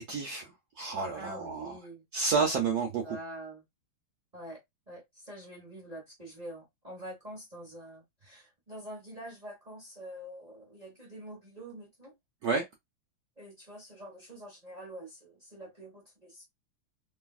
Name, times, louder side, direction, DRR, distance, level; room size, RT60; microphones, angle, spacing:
voice 1, 0.0-1.7 2.1-3.2 12.4-12.6, right 5 dB, 80° right, 0.8 m, -30 dB
voice 2, 1.1-2.0 3.0-3.6 4.3-4.6 4.9-12.1 13.4-16.4, right 1 dB, 40° right, 0.5 m, -46 dB
3.2 x 2.6 x 2.3 m
omnidirectional pair, 2.3 m